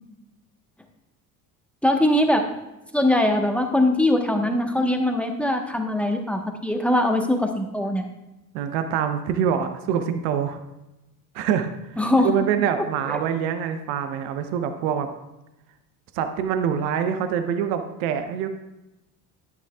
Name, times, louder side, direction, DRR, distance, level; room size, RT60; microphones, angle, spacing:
voice 1, 1.8-2.4 2.9-8.1 12.0-12.4 13.1-13.2, left 1 dB, 5° left, 4 dB, 1.1 m, -21 dB
voice 2, 8.5-10.6 11.3-15.1 16.1-18.5, right 8 dB, 65° right, 8 dB, 0.9 m, -25 dB
10.5 x 9.5 x 2.3 m, 0.98 s
hypercardioid pair, 60°, 49 cm